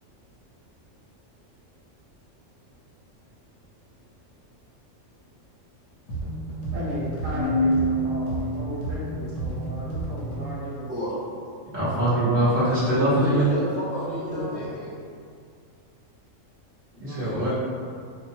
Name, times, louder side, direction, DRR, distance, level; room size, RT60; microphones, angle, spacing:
sound 1, 6.1-10.6, right 2 dB, 65° left, 0.9 m, -32 dB
voice 1, 6.7-10.9 14.0-14.7, equal, 80° right, -6 dB, 1.1 m, -34 dB
Keyboard (musical), 7.3-9.1, equal, 65° right, 0.9 m, -26 dB
voice 2, 11.7-13.5 17.0-17.5, right 1 dB, 10° right, -14 dB, 0.8 m, -22 dB
voice 3, 13.1-14.9 17.0-17.5, equal, 35° left, -8 dB, 0.7 m, -32 dB
2.7 x 2.2 x 2.7 m, 2.2 s
omnidirectional pair, 1.4 m